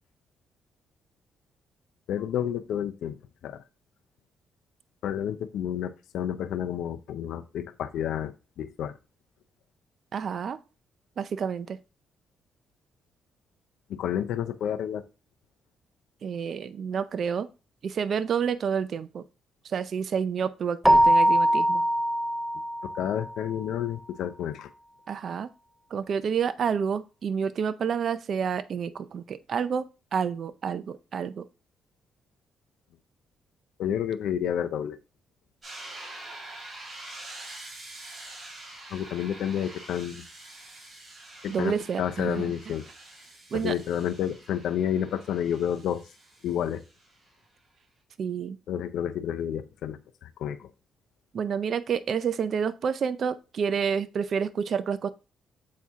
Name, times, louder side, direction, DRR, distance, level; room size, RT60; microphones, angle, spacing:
voice 1, 2.1-3.2 3.4-3.6 5.0-8.3 8.6-8.9 13.9-15.0 22.8-24.7 33.8-35.0 38.9-40.2 41.4-42.8 43.5-46.0 46.4-46.8 48.7-50.7, left 9 dB, 80° left, 9 dB, 0.6 m, -30 dB
voice 2, 10.1-10.6 11.2-11.8 16.2-17.5 17.8-19.2 19.6-21.8 25.1-25.5 25.9-29.8 30.1-31.4 41.5-42.5 43.5-43.8 48.2-48.6 51.3-55.1, right 7 dB, 55° right, 13 dB, 0.5 m, -29 dB
Keyboard (musical), 20.8-23.3, equal, 5° right, 0.6 m, -22 dB
sound 1, 35.6-47.3, right 2 dB, 30° right, 4.0 m, -46 dB
7.4 x 4.3 x 3.6 m, 0.31 s
cardioid pair, 90°, 0 cm